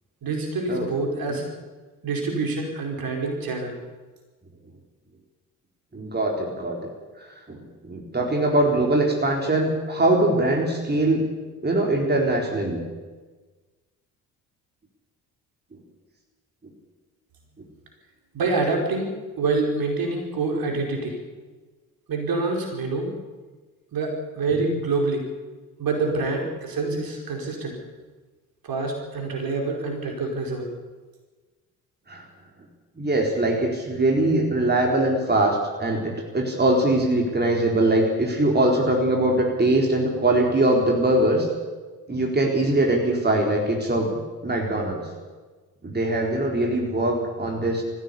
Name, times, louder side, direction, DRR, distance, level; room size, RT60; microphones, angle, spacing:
voice 1, 0.2-1.4 2.0-3.8 18.3-19.1 19.4-21.2 22.1-23.1 23.9-25.2 25.8-27.8 28.6-30.7, right 3 dB, 50° right, 1 dB, 5.0 m, -26 dB
voice 2, 5.9-6.9 7.5-11.2 11.6-12.8 24.6-24.7 26.9-27.0 32.1-32.2 33.0-41.5 42.1-45.1 45.8-47.8, right 1 dB, 20° right, 0 dB, 4.2 m, -22 dB
21.0 x 15.5 x 8.5 m, 1.3 s
figure-of-eight pair, 45°, 46 cm